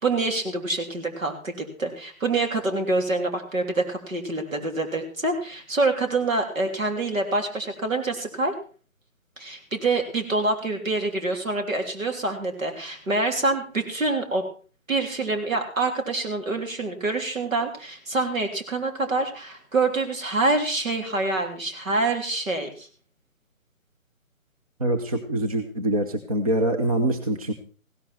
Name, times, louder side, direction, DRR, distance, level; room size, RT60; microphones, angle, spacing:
voice 1, 0.0-8.5 9.4-14.4 14.9-22.9, right 2 dB, 65° right, 4 dB, 3.4 m, -26 dB
voice 2, 24.8-27.5, right 1 dB, 25° right, 5 dB, 0.9 m, -24 dB
16.0 x 11.5 x 4.4 m, 0.39 s
figure-of-eight pair, 150°, 42 cm